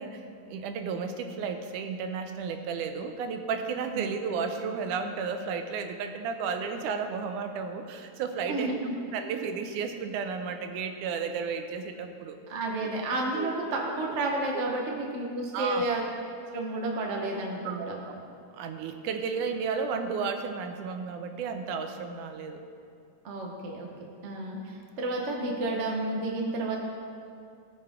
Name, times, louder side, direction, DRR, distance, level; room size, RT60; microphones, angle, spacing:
voice 1, 0.0-8.7 9.1-12.4 12.8-12.9 13.3-13.5 15.5-16.1 17.6-18.2 18.6-22.6, right 5 dB, 85° right, 6 dB, 2.3 m, -33 dB
voice 2, 8.5-9.0 12.5-16.0 16.5-17.9 23.2-23.9 24.2-26.8, right 2 dB, 50° right, -1 dB, 0.8 m, -31 dB
18.0 x 6.6 x 3.7 m, 2.3 s
omnidirectional pair, 3.5 m